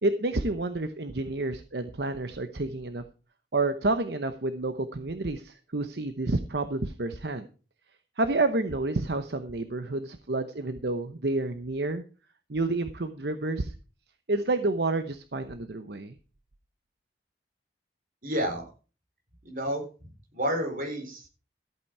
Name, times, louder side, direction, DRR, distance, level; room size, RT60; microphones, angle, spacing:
voice 1, 0.0-3.0 3.5-7.5 8.2-12.0 12.5-13.7 14.3-16.2, right 2 dB, 70° right, 9 dB, 0.9 m, -29 dB
voice 2, 18.2-18.7 19.4-21.3, equal, 50° right, 2 dB, 4.4 m, -31 dB
14.0 x 8.8 x 4.8 m, 0.36 s
head